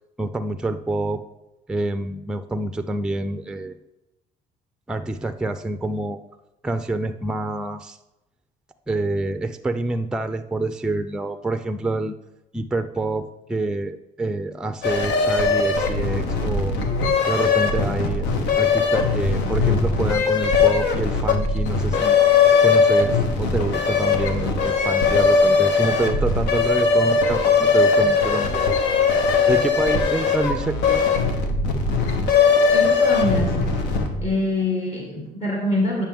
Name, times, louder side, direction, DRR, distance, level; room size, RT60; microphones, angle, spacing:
voice 1, 0.2-1.2 1.7-3.8 4.9-6.2 6.6-8.0 8.9-12.1 12.5-16.8 17.3-28.8 29.5-31.1, right 2 dB, 5° right, 9 dB, 0.4 m, -27 dB
sound 1, 14.8-34.3, left 4 dB, 90° left, 1.0 m, -20 dB
voice 2, 32.7-33.7 34.2-36.1, left 1 dB, 40° left, -2 dB, 1.7 m, -24 dB
9.0 x 5.9 x 3.6 m, 0.94 s
cardioid pair, 110°, 17 cm